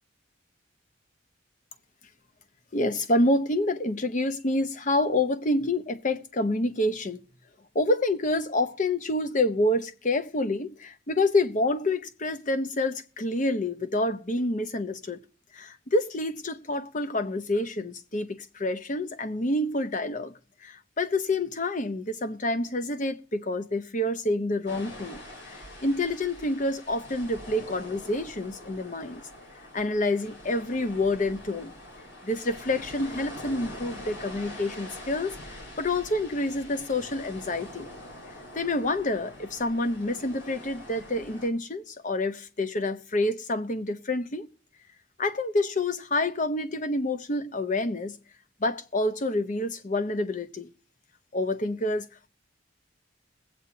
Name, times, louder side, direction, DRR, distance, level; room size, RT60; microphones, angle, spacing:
voice 1, 2.7-7.2 7.7-15.2 15.5-20.3 20.6-29.2 29.7-31.7 32.2-37.9 38.5-44.5 45.2-48.2 48.6-50.7 51.3-52.1, left 2 dB, 40° left, 0.8 m, -28 dB
sound 1, 24.7-41.5, left 1 dB, 70° left, 3.8 m, -44 dB
21.5 x 8.4 x 2.9 m
head